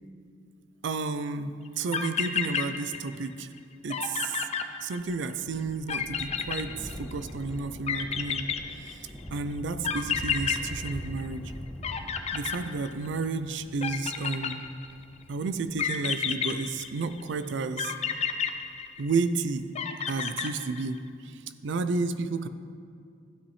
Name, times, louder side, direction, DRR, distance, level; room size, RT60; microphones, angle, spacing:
voice 1, 0.8-3.5 3.8-4.4 4.8-8.5 8.8-9.0 9.3-11.5 12.3-14.6 15.3-17.9 19.0-19.7 20.1-21.3 21.6-22.5, right 4 dB, 65° right, 12 dB, 0.4 m, -31 dB
sound 1, 1.7-1.8 1.9-3.3 3.6-3.7 3.9-5.3 5.9-7.3 7.9-9.2 9.8-11.5 11.8-13.2 13.8-15.0 15.8-17.2 17.8-19.3 19.8-21.0, left 7 dB, 35° left, 0.4 m, -31 dB
Thunder, 5.0-17.9 18.7-18.8, equal, 10° left, 0.9 m, -43 dB
12.5 x 8.3 x 3.2 m, 2.3 s
head